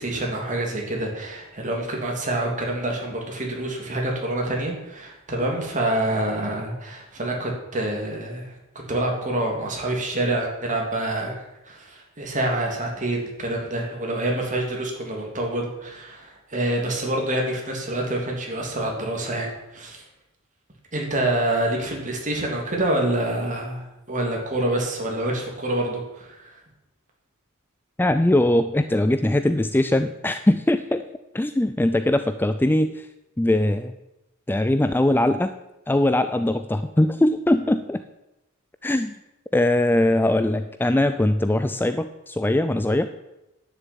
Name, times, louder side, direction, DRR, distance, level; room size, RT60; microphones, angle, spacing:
voice 1, 0.0-8.5 8.9-20.0 20.9-26.6, right 1 dB, 35° right, 0 dB, 3.2 m, -27 dB
voice 2, 28.0-31.0 31.3-33.1 33.4-34.0 34.5-35.5 35.9-38.0 38.8-39.2 39.5-43.1, left 1 dB, 10° left, 11 dB, 0.4 m, -21 dB
10.5 x 6.9 x 9.0 m, 0.94 s
head